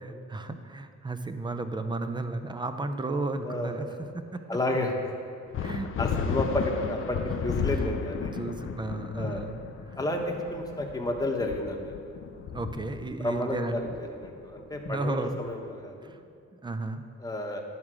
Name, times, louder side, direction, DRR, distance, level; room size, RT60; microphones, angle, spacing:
voice 1, 0.0-3.9 4.1-4.4 5.6-6.2 8.3-10.0 12.2-13.8 14.9-15.4 16.0-16.2 16.5-17.0, right 2 dB, 15° right, 9 dB, 0.5 m, -34 dB
voice 2, 3.4-4.1 4.5-5.1 6.0-8.3 9.1-9.5 10.0-11.9 13.2-16.1 17.2-17.6, left 1 dB, 10° left, 1 dB, 1.1 m, -31 dB
sound 1, 5.5-15.5, left 6 dB, 45° left, 0.5 m, -34 dB
11.0 x 3.6 x 6.1 m, 2.4 s
cardioid pair, 90°, 30 cm